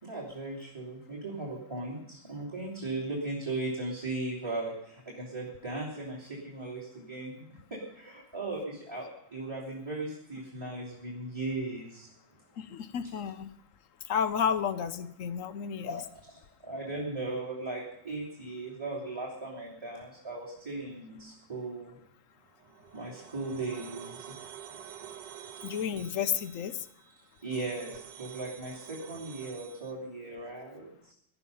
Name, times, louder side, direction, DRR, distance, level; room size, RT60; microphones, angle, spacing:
voice 1, 0.0-7.3 7.7-12.1 16.6-22.0 22.9-24.4 25.0-25.1 27.4-31.1, right 2 dB, 15° right, -3 dB, 2.9 m, -37 dB
voice 2, 12.6-13.5 14.1-16.2 25.6-26.9, left 7 dB, 60° left, 12 dB, 0.9 m, -32 dB
sound 1, 22.5-29.9, right 10 dB, 70° right, 1.5 m, -48 dB
17.5 x 11.5 x 5.6 m, 0.75 s
omnidirectional pair, 2.0 m